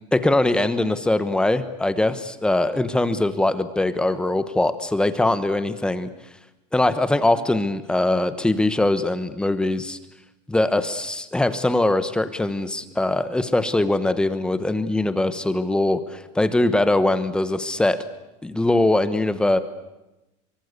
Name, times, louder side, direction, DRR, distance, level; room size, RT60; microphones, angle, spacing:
voice 1, 0.1-6.1 6.7-10.0 10.5-18.0 18.4-19.6, left 2 dB, 5° left, 11 dB, 1.2 m, -22 dB
24.5 x 24.0 x 8.3 m, 0.98 s
cardioid pair, 160°, 16 cm